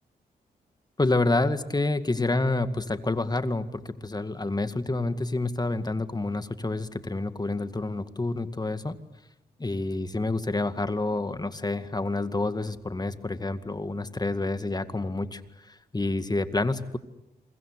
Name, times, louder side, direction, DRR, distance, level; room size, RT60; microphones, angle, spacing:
voice 1, 1.0-9.0 9.6-17.0, left 2 dB, 25° left, 11 dB, 2.0 m, -28 dB
27.5 x 24.0 x 8.2 m, 0.88 s
cardioid pair, 55°, 17 cm